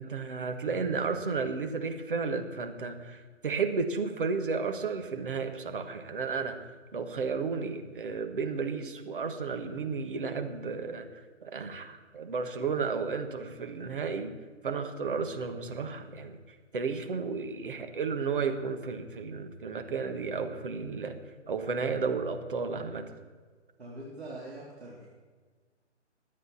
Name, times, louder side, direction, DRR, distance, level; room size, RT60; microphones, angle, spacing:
voice 1, 0.0-6.6 6.9-11.1 11.4-14.3 14.6-16.4 16.7-21.2 21.5-23.1, right 5 dB, 45° right, 6 dB, 1.5 m, -33 dB
voice 2, 23.8-25.1, right 1 dB, 65° right, -6 dB, 3.7 m, -43 dB
22.0 x 9.3 x 4.1 m, 1.5 s
figure-of-eight pair, 140°, 35 cm